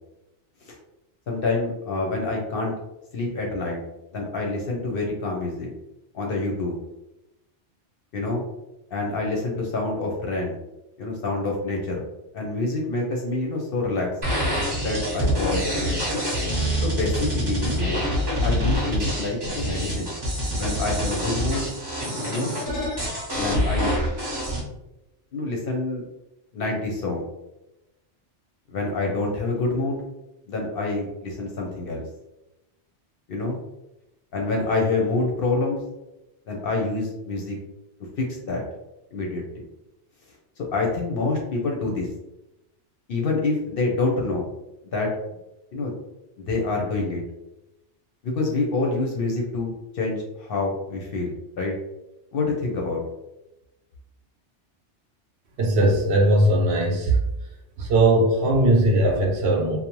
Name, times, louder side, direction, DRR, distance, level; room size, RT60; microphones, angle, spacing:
voice 1, 1.3-2.7 3.1-3.8 4.1-5.7 6.1-6.8 8.1-8.4 8.9-10.6 11.0-12.0 12.3-14.1 14.8-15.9 16.8-18.0 18.4-20.1 20.5-21.7 22.2-22.5 23.3-24.1 25.3-26.1 26.5-27.3 28.7-30.0 30.5-32.0 33.3-33.6 34.3-35.8 36.5-37.6 38.2-38.6 39.1-39.6 40.7-42.1 43.1-44.4 44.8-45.1 45.7-45.9 46.4-47.2 48.2-51.7 52.3-53.0, left 3 dB, 60° left, 0 dB, 0.7 m, -27 dB
sound 1, 14.2-24.6, equal, 25° right, 0.6 m, -26 dB
voice 2, 55.6-57.1 57.8-59.8, right 1 dB, 70° right, 1 dB, 0.8 m, -19 dB
2.7 x 2.0 x 2.9 m, 0.93 s
omnidirectional pair, 1.2 m